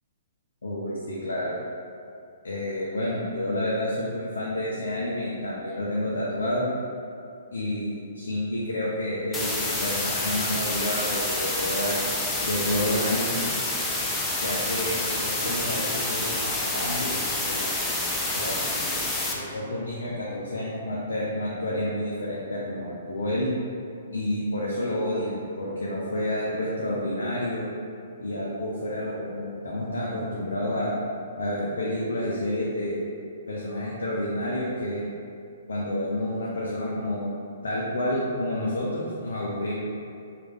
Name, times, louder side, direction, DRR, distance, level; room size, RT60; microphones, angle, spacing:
voice 1, 0.6-1.6 2.4-6.6 7.5-12.0 12.4-13.4 14.4-17.7 18.3-19.0 19.3-23.5 24.1-27.7 28.2-30.9 31.3-33.0 33.5-35.1 35.7-37.3 37.6-39.8, left 1 dB, 75° left, -5 dB, 0.5 m, -29 dB
sound 1, 9.3-19.3, left 2 dB, 10° left, 0.4 m, -28 dB
3.1 x 2.4 x 3.3 m, 2.5 s
figure-of-eight pair, 120°, 0 cm